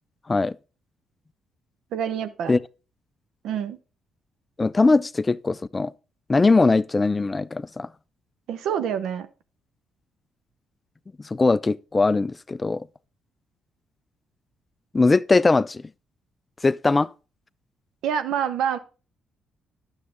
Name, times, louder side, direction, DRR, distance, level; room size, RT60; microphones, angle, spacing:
voice 1, 1.9-2.5 3.4-3.8 8.5-9.3 18.0-18.8, right 8 dB, 75° right, 0.7 m, -26 dB
voice 2, 4.6-5.9 6.3-7.9 11.3-12.8 14.9-15.8 16.6-17.1, left 3 dB, 25° left, 0.3 m, -20 dB
9.6 x 7.2 x 3.6 m
cardioid pair, 75°, 0 cm